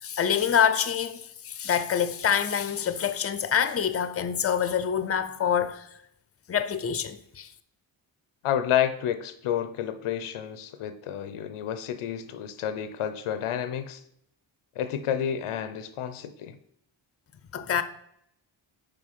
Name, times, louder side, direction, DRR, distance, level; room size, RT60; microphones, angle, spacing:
voice 1, 0.0-5.9 6.5-7.5 17.5-17.8, left 8 dB, 30° left, 0.5 m, -26 dB
voice 2, 8.4-14.0 14.8-16.6, left 9 dB, 90° left, 0.6 m, -30 dB
5.1 x 4.4 x 5.5 m
cardioid pair, 65°, 49 cm